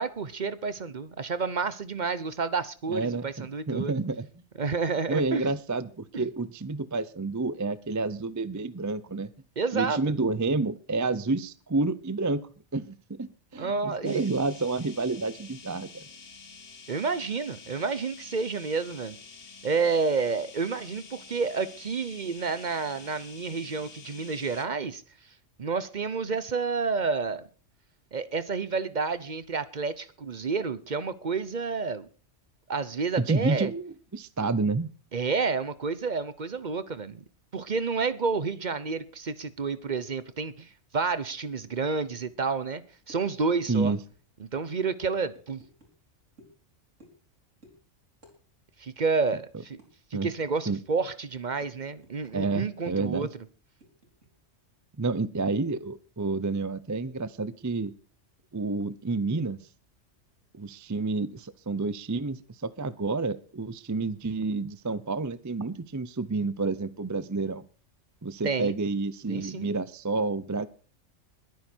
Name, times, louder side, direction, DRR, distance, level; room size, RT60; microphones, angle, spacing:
voice 1, 0.0-3.9 4.6-5.5 6.1-6.2 9.6-10.0 13.6-14.3 16.9-19.2 19.6-25.0 25.6-27.4 28.1-32.1 32.7-33.7 35.1-37.2 37.5-42.8 43.1-43.9 44.5-45.6 48.8-49.8 50.1-53.3 68.4-68.8 69.3-69.7, right 4 dB, 40° right, 0.9 m, -30 dB
voice 2, 2.9-4.3 5.1-9.3 9.7-12.4 12.7-16.0 33.3-34.9 43.7-44.0 50.1-50.3 50.7-50.8 52.3-53.3 55.0-57.9 58.5-59.6 60.5-67.6 68.2-70.7, right 3 dB, 20° right, 0.5 m, -29 dB
sound 1, 14.0-24.7, left 5 dB, 55° left, 1.4 m, -48 dB
sound 2, 43.1-43.3 43.7-43.8 44.1-44.2 44.5-44.7 45.3-45.9 46.4-46.6 47.0-47.3 47.6-47.8 48.2-48.4 48.6-48.8 49.3-49.4 49.8-49.9 50.4-50.7 51.1-52.6 52.8-52.9 53.3-54.3, right 1 dB, 75° right, 4.7 m, -56 dB
21.0 x 9.5 x 4.5 m
omnidirectional pair, 1.3 m